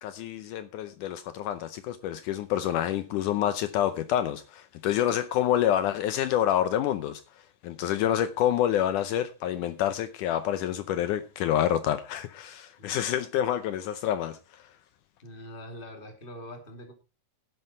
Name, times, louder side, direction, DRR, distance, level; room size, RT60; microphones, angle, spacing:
voice 1, 0.0-7.2 7.6-14.4, left 11 dB, 75° left, 2.2 m, -27 dB
voice 2, 15.2-16.9, equal, 15° left, 2.7 m, -43 dB
11.5 x 11.0 x 4.5 m
omnidirectional pair, 3.7 m